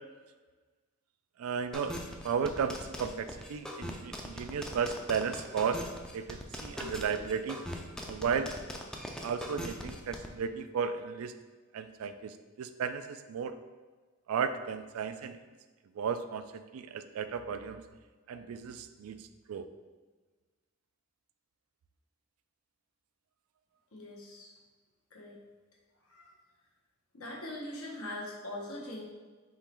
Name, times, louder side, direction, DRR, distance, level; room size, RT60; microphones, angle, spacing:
voice 1, 1.4-5.8 6.1-7.6 8.1-8.5 9.2-11.3 11.7-13.6 14.3-15.4 16.0-17.8 18.3-19.7, right 6 dB, 80° right, 11 dB, 0.3 m, -34 dB
sound 1, 1.7-10.3, left 1 dB, 5° left, 0.3 m, -40 dB
voice 2, 23.9-24.5 25.1-25.4 26.0-26.3 27.1-29.0, left 1 dB, 90° left, -3 dB, 1.1 m, -42 dB
3.7 x 3.0 x 4.3 m, 1.4 s
head